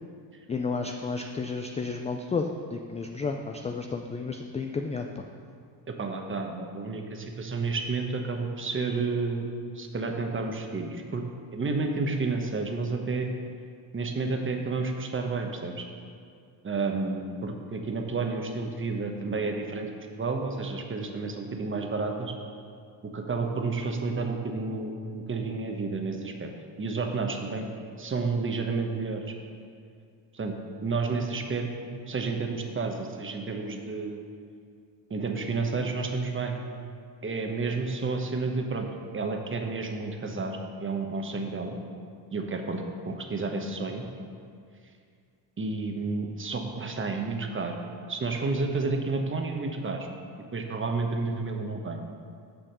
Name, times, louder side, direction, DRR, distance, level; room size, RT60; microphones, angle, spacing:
voice 1, 0.5-5.2, left 4 dB, 15° left, 4 dB, 0.3 m, -32 dB
voice 2, 5.9-9.5 9.7-11.2 11.5-13.3 13.9-15.9 16.6-19.9 20.2-22.3 23.0-26.5 26.8-27.7 28.0-29.2 30.3-34.2 35.1-36.6 37.2-38.9 39.1-41.8 42.3-44.0 45.6-47.7 48.1-50.0 50.5-52.0, right 3 dB, 25° right, 3 dB, 1.1 m, -31 dB
7.1 x 5.7 x 6.7 m, 2.3 s
supercardioid pair, 90°, 48 cm